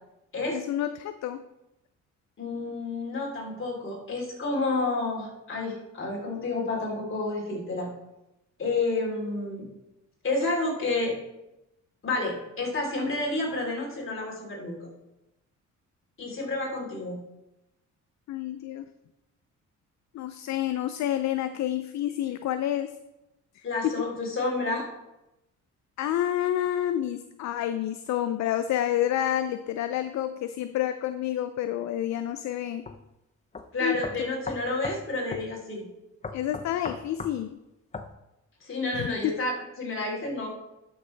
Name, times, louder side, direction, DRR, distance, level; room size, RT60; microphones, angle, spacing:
voice 1, 0.5-1.4 18.3-18.9 20.1-22.9 23.6-24.1 26.0-32.9 33.8-34.0 36.3-37.6 38.9-39.3, left 11 dB, 65° left, 10 dB, 0.5 m, -29 dB
voice 2, 2.4-7.9 8.6-9.7 10.2-11.1 12.0-14.9 16.2-17.2 23.6-24.9 33.7-35.9 38.6-40.5, left 2 dB, 45° left, -3 dB, 3.6 m, -30 dB
sound 1, 32.8-33.0 33.5-33.6 34.0-35.0 35.3-35.5 36.2-37.4 37.9-38.1, left 4 dB, 25° left, 0.7 m, -36 dB
12.0 x 6.6 x 3.4 m, 0.92 s
cardioid pair, 90°, 30 cm